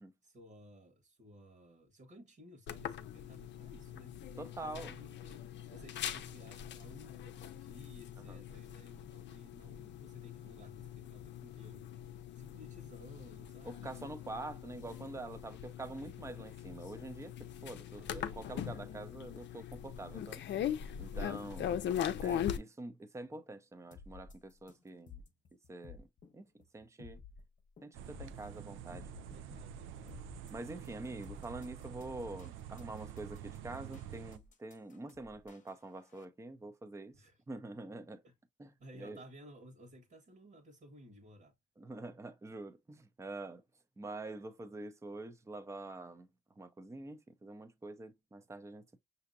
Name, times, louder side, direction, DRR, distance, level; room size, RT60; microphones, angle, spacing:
voice 1, 0.2-4.2 4.6-11.9 12.3-13.9 17.9-18.4 21.1-21.5 29.3-30.2 37.1-37.4 38.2-38.3 38.8-41.5, equal, 50° right, 1.4 m, -56 dB
sound 1, 2.7-22.6, left 9 dB, 65° left, 0.6 m, -41 dB
voice 2, 4.4-5.0 8.3-8.4 13.6-17.3 17.6-20.4 21.0-21.7 22.2-25.2 25.7-26.1 26.3-26.5 26.7-27.2 27.8-29.1 30.5-37.1 37.5-38.2 38.6-38.7 39.0-39.2 41.8-43.6 44.0-46.3 46.6-49.0, right 2 dB, 15° right, 0.6 m, -46 dB
sound 2, 23.9-36.2, left 5 dB, 40° left, 0.9 m, -55 dB
sound 3, 27.9-34.4, right 10 dB, 80° right, 0.4 m, -48 dB
5.7 x 2.7 x 2.6 m
cardioid pair, 90°, 20 cm